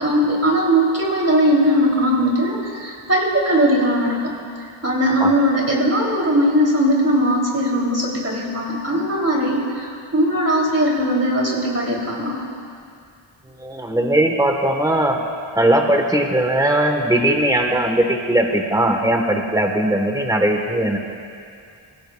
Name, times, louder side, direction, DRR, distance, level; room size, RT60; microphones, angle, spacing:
voice 1, 0.0-4.3 4.8-12.4, equal, 30° right, -3 dB, 3.2 m, -19 dB
voice 2, 13.6-15.2 15.6-21.0, right 1 dB, 5° right, 3 dB, 1.3 m, -19 dB
21.0 x 16.0 x 2.4 m, 2.4 s
wide cardioid pair, 60°, 50 cm